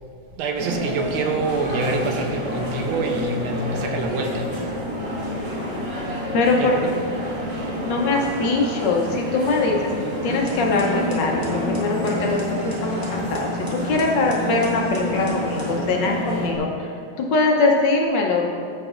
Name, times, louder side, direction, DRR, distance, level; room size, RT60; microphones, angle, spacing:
voice 1, 0.4-4.5 5.0-5.1 6.6-6.9 7.2-7.3, right 3 dB, 85° right, 4 dB, 1.6 m, -26 dB
sound 1, 0.5-16.5, equal, 60° right, 2.7 m, -28 dB
voice 2, 6.3-6.8 7.8-9.9 10.2-12.4 12.8-16.9 17.2-18.5, left 3 dB, 65° left, 0 dB, 1.3 m, -22 dB
sound 2, 10.3-16.6, left 1 dB, 15° right, 0.7 m, -34 dB
14.0 x 5.2 x 2.4 m, 2.4 s
omnidirectional pair, 2.2 m